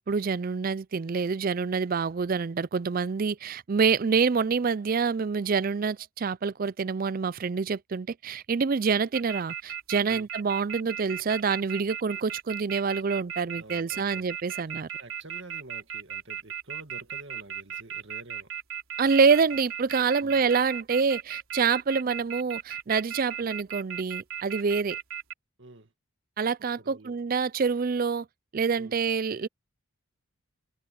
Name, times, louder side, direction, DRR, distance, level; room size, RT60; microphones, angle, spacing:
voice 1, 0.0-14.9 19.0-25.0 26.4-28.3 28.5-29.5, right 5 dB, 40° right, 0.4 m, -26 dB
sound 1, 9.1-25.3, right 8 dB, 75° right, 3.4 m, -36 dB
voice 2, 13.5-14.3 15.0-18.5 20.2-20.4 25.6-25.9 26.8-27.2 28.8-29.0, right 2 dB, 55° right, 2.1 m, -48 dB
head